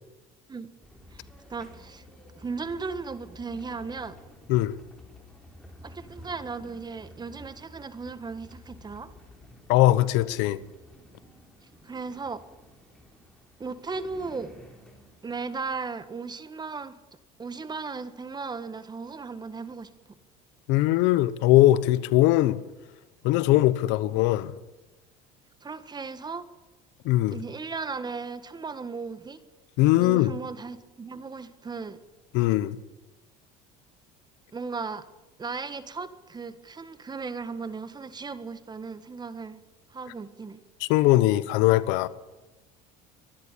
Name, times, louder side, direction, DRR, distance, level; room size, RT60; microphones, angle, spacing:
sound 1, 0.8-15.9, left 1 dB, 5° left, 4.4 m, -51 dB
voice 1, 1.5-2.0 2.4-4.2 5.8-9.1 11.8-12.4 13.6-14.6 15.2-16.9 17.4-19.9 25.6-26.5 27.3-29.4 30.0-32.0 34.5-35.0 35.4-39.6 39.9-40.6, right 4 dB, 20° right, 1.6 m, -36 dB
voice 2, 9.7-10.6 20.7-22.6 23.2-24.5 27.0-27.4 29.8-30.3 32.3-32.8 40.8-42.1, left 16 dB, 75° left, 1.0 m, -21 dB
23.5 x 11.0 x 9.9 m
supercardioid pair, 110°, 19 cm